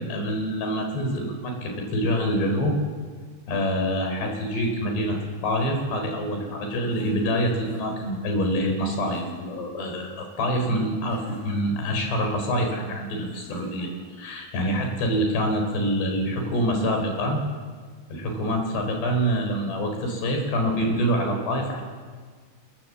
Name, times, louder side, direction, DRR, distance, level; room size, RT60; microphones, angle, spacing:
voice 1, 0.0-2.7 3.5-5.2 5.4-17.4 18.1-21.8, equal, 60° left, 3 dB, 6.4 m, -26 dB
sound 1, 6.9-8.2 9.0-9.6 11.1-11.9 13.3-14.1, equal, 40° left, 9.1 m, -44 dB
28.5 x 22.5 x 7.5 m, 1.5 s
omnidirectional pair, 5.5 m